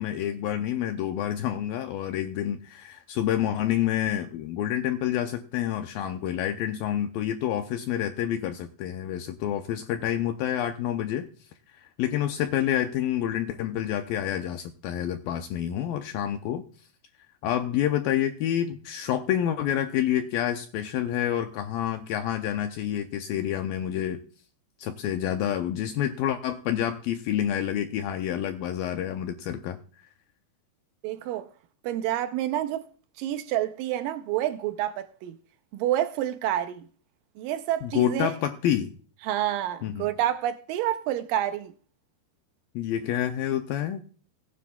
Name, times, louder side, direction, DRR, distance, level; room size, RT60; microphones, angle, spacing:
voice 1, 0.0-11.3 11.8-16.6 17.4-24.2 24.8-29.8 37.8-38.9 39.8-40.1 42.8-44.0, left 11 dB, 80° left, 2.1 m, -28 dB
voice 2, 31.0-31.5 31.8-32.8 33.2-35.4 35.7-36.9 37.4-38.3 39.2-41.7, right 12 dB, 85° right, 1.9 m, -28 dB
19.0 x 9.5 x 2.3 m
omnidirectional pair, 4.7 m